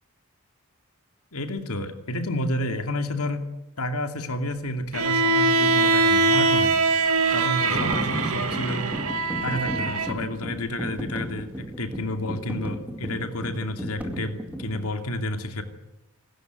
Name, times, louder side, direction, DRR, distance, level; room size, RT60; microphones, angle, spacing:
voice 1, 1.3-3.5 3.8-6.8 7.3-8.9 9.4-15.6, left 1 dB, 80° left, 6 dB, 2.6 m, -30 dB
Bowed string instrument, 4.9-10.2, right 3 dB, 80° right, 2.5 m, -22 dB
sound 1, 7.6-14.9, equal, 5° right, 2.3 m, -35 dB
27.0 x 13.5 x 9.5 m, 0.98 s
head